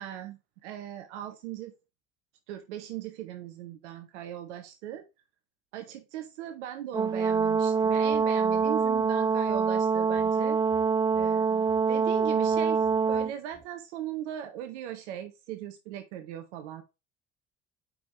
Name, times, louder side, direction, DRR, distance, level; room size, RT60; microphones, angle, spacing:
voice 1, 0.0-1.7 2.5-5.0 5.7-10.6 11.1-16.8, right 11 dB, 75° right, 0.7 m, -39 dB
Brass instrument, 6.9-13.3, right 5 dB, 15° right, 0.3 m, -25 dB
5.1 x 4.7 x 4.6 m
hypercardioid pair, 55°, 35 cm